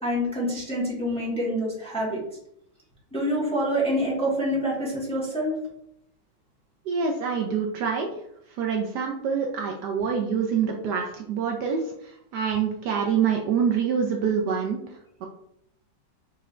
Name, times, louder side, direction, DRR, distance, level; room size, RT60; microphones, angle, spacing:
voice 1, 0.0-2.2 3.1-5.5, equal, 5° left, -6 dB, 1.1 m, -26 dB
voice 2, 6.9-8.1 8.6-11.8 12.3-14.8 15.2-15.3, right 6 dB, 75° right, 1 dB, 1.1 m, -25 dB
5.6 x 3.1 x 2.4 m, 0.76 s
omnidirectional pair, 2.0 m